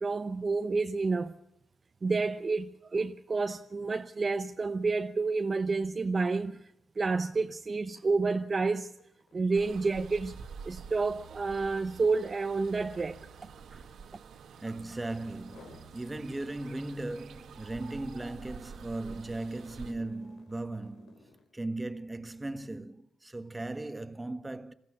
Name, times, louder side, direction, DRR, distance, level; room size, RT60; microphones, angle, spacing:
voice 1, 0.0-1.3 2.0-6.7 7.0-8.9 9.3-10.3 10.6-13.2 13.7-13.8, right 4 dB, 35° right, 0.8 m, -29 dB
sound 1, 5.9-6.1 6.4-14.9 15.3-15.9 16.4-21.5, left 4 dB, 85° left, 3.6 m, -61 dB
sound 2, 9.5-19.9, right 6 dB, 75° right, 1.6 m, -48 dB
voice 2, 14.6-21.2 21.5-24.7, right 2 dB, 15° right, 1.4 m, -37 dB
21.5 x 16.0 x 8.5 m
cardioid pair, 85°, 0 cm